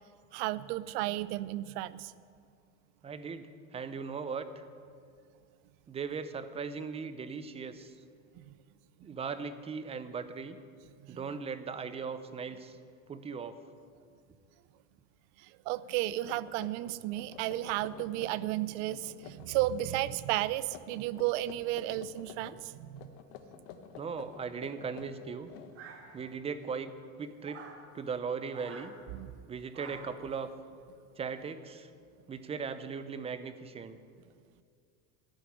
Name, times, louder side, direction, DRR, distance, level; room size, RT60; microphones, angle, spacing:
voice 1, 0.3-2.1 8.4-8.6 11.0-11.2 15.7-23.1 29.1-29.3, right 15 dB, 70° right, 18 dB, 0.6 m, -33 dB
voice 2, 3.0-4.6 5.9-7.9 9.0-10.6 11.1-12.8 13.1-13.6 24.0-25.5 26.1-26.9 27.2-27.6 27.9-28.9 29.5-30.5 31.2-31.9 32.3-34.0, right 5 dB, 15° right, 11 dB, 0.6 m, -38 dB
sound 1, 15.8-15.9 16.3-18.5 18.8-20.1 20.7-22.6 23.0-26.2, left 8 dB, 75° left, 1.2 m, -50 dB
sound 2, 25.7-26.5 27.4-27.8 28.5-28.9 29.7-30.2, right 5 dB, 40° right, 1.8 m, -48 dB
14.0 x 6.5 x 9.8 m, 2.3 s
cardioid pair, 150°, 35 cm